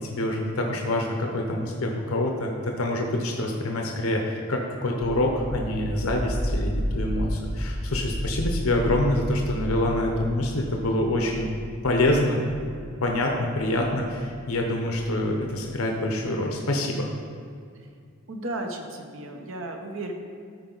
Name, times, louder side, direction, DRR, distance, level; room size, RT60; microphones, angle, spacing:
voice 1, 0.0-11.5 11.8-12.4 13.0-17.1, left 1 dB, 80° left, 1 dB, 0.8 m, -26 dB
sound 1, 5.0-15.7, equal, 5° right, 0.3 m, -33 dB
voice 2, 18.3-20.1, right 2 dB, 65° right, 3 dB, 0.9 m, -34 dB
13.0 x 4.8 x 3.9 m, 2.3 s
head